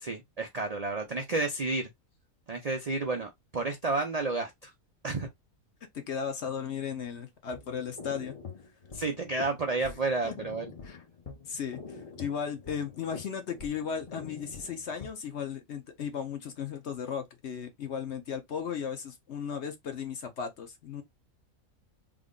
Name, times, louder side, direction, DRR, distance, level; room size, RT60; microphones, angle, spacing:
voice 1, 0.0-1.9 2.5-4.7 5.0-5.3 8.9-10.7, right 3 dB, 60° right, 0.4 m, -31 dB
voice 2, 6.1-8.4 10.2-10.3 10.8-11.0 11.5-21.0, left 7 dB, 60° left, 0.9 m, -36 dB
sound 1, 7.5-15.1, left 5 dB, 40° left, 0.5 m, -45 dB
3.5 x 2.1 x 3.7 m
omnidirectional pair, 1.5 m